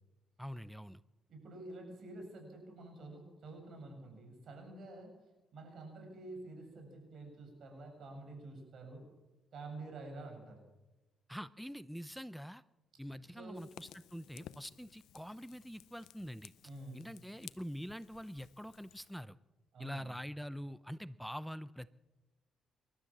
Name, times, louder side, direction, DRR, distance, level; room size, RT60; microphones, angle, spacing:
voice 1, 0.4-1.0 11.3-12.6 13.0-16.5 16.9-19.4 19.8-21.9, equal, ahead, 15 dB, 0.6 m, -45 dB
voice 2, 1.3-5.1 5.5-9.1 9.5-10.6 13.3-13.6 16.6-17.0 19.7-20.1, right 2 dB, 60° right, 3 dB, 7.7 m, -49 dB
Fire, 13.5-19.2, left 12 dB, 85° left, 0.6 m, -57 dB
27.5 x 12.5 x 7.5 m, 1.1 s
cardioid pair, 90°, 0 cm